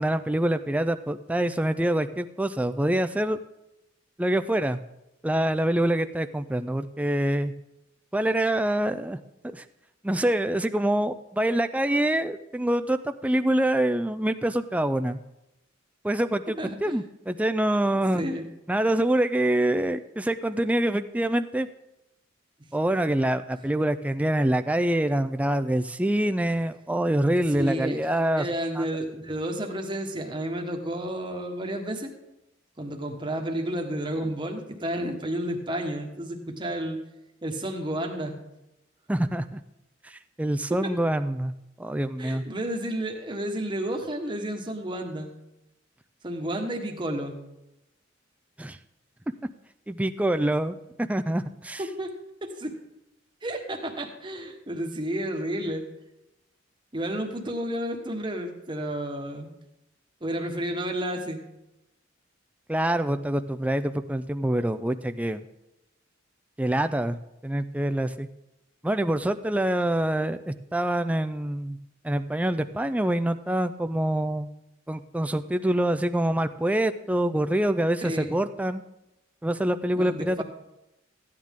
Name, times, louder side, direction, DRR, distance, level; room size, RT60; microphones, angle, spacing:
voice 1, 0.0-3.4 4.2-4.8 5.2-7.5 8.1-9.2 9.5-9.6 10.0-15.2 16.0-18.2 18.7-21.7 22.7-28.5 28.8-28.9 39.1-39.6 40.0-41.5 41.8-42.4 48.6-48.8 49.9-51.8 62.7-65.4 66.6-68.3 68.8-71.8 72.0-74.5 74.9-78.8 79.4-80.4, right 1 dB, 5° right, 9 dB, 0.4 m, -25 dB
voice 2, 16.6-17.0 18.1-18.5 27.5-28.0 28.4-32.1 32.8-37.0 37.4-38.3 40.7-40.9 42.2-45.3 46.2-47.4 51.8-52.1 52.4-52.7 53.4-55.8 56.9-59.5 60.2-61.4 78.0-78.4 79.9-80.4, right 1 dB, 25° right, 3 dB, 1.3 m, -31 dB
14.5 x 9.4 x 3.7 m, 0.91 s
head